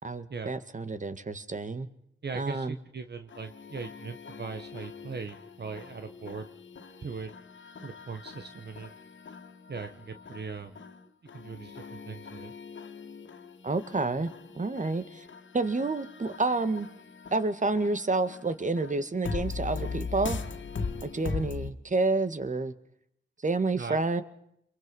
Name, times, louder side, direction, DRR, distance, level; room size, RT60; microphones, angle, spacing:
voice 1, 0.0-1.9 2.4-2.8 13.6-14.3 14.6-15.2 15.5-16.9 17.3-20.4 21.0-22.7 23.4-24.2, right 3 dB, 40° right, 11 dB, 2.0 m, -29 dB
voice 2, 2.2-6.5 7.0-7.3 7.8-8.9 9.7-10.7 11.3-12.5 23.7-24.0, right 5 dB, 60° right, 8 dB, 1.5 m, -39 dB
sound 1, 3.3-21.7, left 5 dB, 75° left, 2.1 m, -40 dB
28.5 x 23.0 x 5.6 m, 0.72 s
cardioid pair, 60°, 19 cm